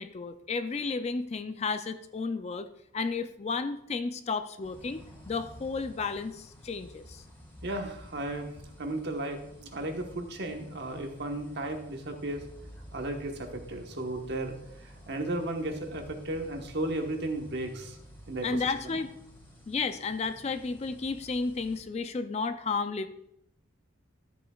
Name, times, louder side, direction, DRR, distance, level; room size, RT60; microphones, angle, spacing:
voice 1, 0.0-2.7 2.9-7.2 18.4-19.1 19.7-23.1, left 4 dB, 30° left, 10 dB, 0.3 m, -32 dB
sound 1, 4.6-21.8, equal, 10° left, 3.4 m, -51 dB
voice 2, 7.6-8.5 8.8-12.4 12.9-18.0 18.3-19.0, right 1 dB, 55° right, 3 dB, 1.2 m, -35 dB
13.0 x 8.4 x 2.4 m, 0.77 s
head